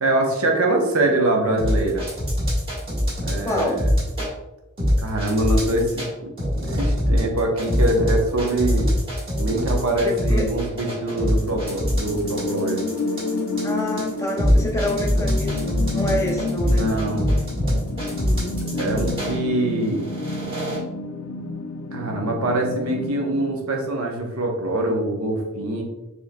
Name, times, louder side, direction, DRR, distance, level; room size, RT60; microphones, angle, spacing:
voice 1, 0.0-2.0 3.2-3.8 5.0-8.9 9.4-12.8 16.6-17.3 18.8-20.1 21.9-25.8, right 1 dB, 80° right, 1 dB, 0.9 m, -24 dB
sound 1, 1.6-4.3 4.8-6.1 6.4-19.4 19.9-20.8, equal, 25° right, 1.4 m, -23 dB
voice 2, 3.4-3.8 10.0-10.4 13.6-16.9 18.0-18.5 19.2-19.3, left 1 dB, 15° left, 0 dB, 0.6 m, -27 dB
sound 2, 11.5-23.5, left 3 dB, 80° left, 0.5 m, -29 dB
6.0 x 3.1 x 2.2 m, 0.99 s
head